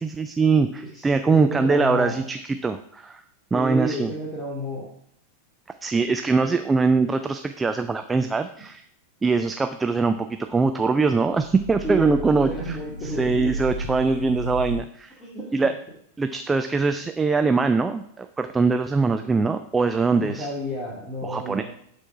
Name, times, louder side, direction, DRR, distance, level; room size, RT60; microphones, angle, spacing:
voice 1, 0.0-3.2 3.5-4.1 5.8-8.8 9.2-15.1 15.5-15.7 16.2-20.5 21.2-21.6, right 4 dB, 15° right, 8 dB, 0.5 m, -22 dB
voice 2, 0.9-2.3 3.5-4.9 11.8-13.5 15.2-15.5 20.1-21.6, equal, 15° left, -6 dB, 2.4 m, -31 dB
sound 1, 11.3-14.8, right 1 dB, 90° left, 1.3 m, -33 dB
11.5 x 4.4 x 4.7 m, 0.69 s
figure-of-eight pair, 90°, 0 cm